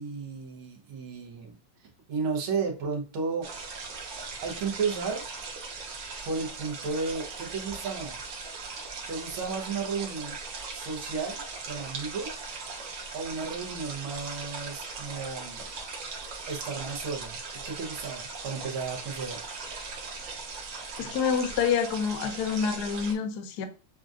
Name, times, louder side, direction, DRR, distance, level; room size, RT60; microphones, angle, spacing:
voice 1, 0.0-3.5 4.4-5.2 6.3-8.2 9.1-10.4 10.7-12.4 13.1-15.7 16.5-19.4, right 5 dB, 85° right, 1.8 m, -33 dB
sound 1, 3.4-23.1, right 4 dB, 65° right, 1.5 m, -39 dB
voice 2, 21.0-23.7, left 6 dB, 70° left, 1.0 m, -27 dB
6.6 x 2.4 x 2.4 m
omnidirectional pair, 2.2 m